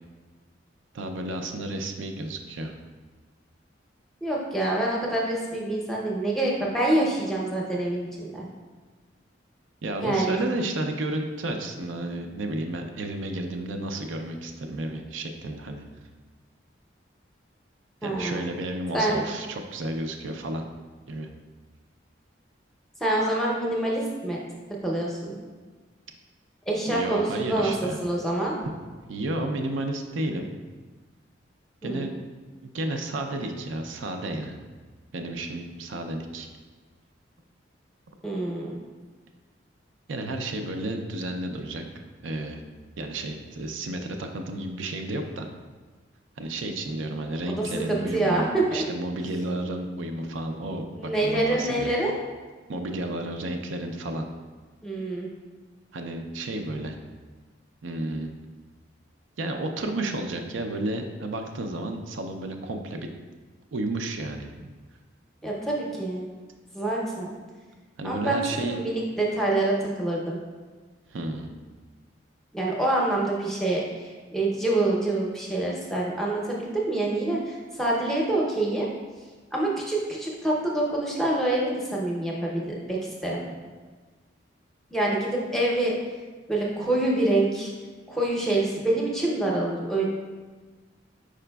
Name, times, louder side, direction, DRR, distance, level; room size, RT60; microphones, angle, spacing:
voice 1, 0.9-2.7 9.8-15.8 18.0-20.6 21.1-21.3 26.9-28.0 29.1-30.5 31.8-32.2 32.7-34.6 35.1-36.5 40.1-41.8 42.2-42.6 43.0-45.5 46.4-51.9 52.7-54.2 55.9-57.0 57.8-58.3 59.4-63.1 63.7-64.5 68.0-68.7 71.1-71.5, right 1 dB, 90° right, 4 dB, 0.4 m, -32 dB
voice 2, 4.2-8.5 10.0-10.4 18.0-18.4 18.9-19.2 23.0-24.4 24.8-25.4 26.7-28.6 31.8-32.1 38.2-38.8 47.5-48.8 51.0-52.1 54.8-55.3 65.4-66.2 66.7-67.3 68.0-70.4 72.5-78.9 79.5-83.4 84.9-86.0 86.5-87.7 88.1-90.1, right 2 dB, ahead, -3 dB, 0.6 m, -26 dB
4.9 x 4.9 x 2.2 m, 1.4 s
head